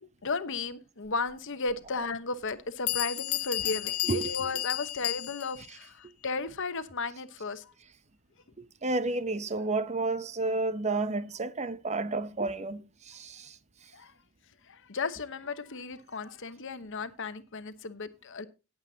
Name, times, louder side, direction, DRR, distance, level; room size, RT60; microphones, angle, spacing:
voice 1, 0.0-7.7 13.9-14.1 14.7-18.5, left 4 dB, 60° left, 1.0 m, -35 dB
Bell, 1.7-1.8 2.5-2.6 2.9-5.7, left 16 dB, 80° left, 0.5 m, -32 dB
voice 2, 4.0-4.3 8.6-13.6, right 3 dB, 30° right, 0.7 m, -31 dB
17.5 x 7.8 x 2.8 m
head